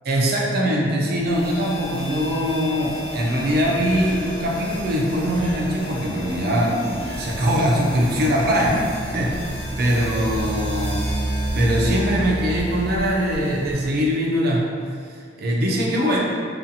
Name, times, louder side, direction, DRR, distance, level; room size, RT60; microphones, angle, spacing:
voice 1, 0.1-9.4 9.8-11.0 11.5-14.7 15.4-16.2, equal, 55° right, -2 dB, 0.5 m, -22 dB
sound 1, 1.2-14.1, right 1 dB, 35° right, 1.0 m, -31 dB
sound 2, 2.4-10.8, equal, 55° left, 1.0 m, -43 dB
sound 3, 3.3-10.9, equal, 40° left, 0.5 m, -38 dB
2.6 x 2.4 x 2.6 m, 2.2 s
head